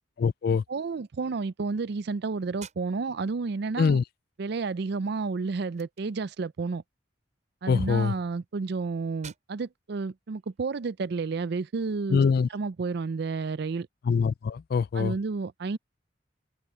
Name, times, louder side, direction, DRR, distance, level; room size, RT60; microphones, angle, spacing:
voice 1, 0.2-0.6 3.8-4.0 7.7-8.1 12.1-12.5 14.1-15.2, left 5 dB, 50° left, 0.3 m, -24 dB
voice 2, 0.7-4.0 4.4-6.8 7.6-12.2 12.5-13.9 14.9-15.8, right 4 dB, 60° right, 0.4 m, -31 dB
sound 1, 2.5-11.4, right 7 dB, 40° right, 7.1 m, -55 dB
open air
head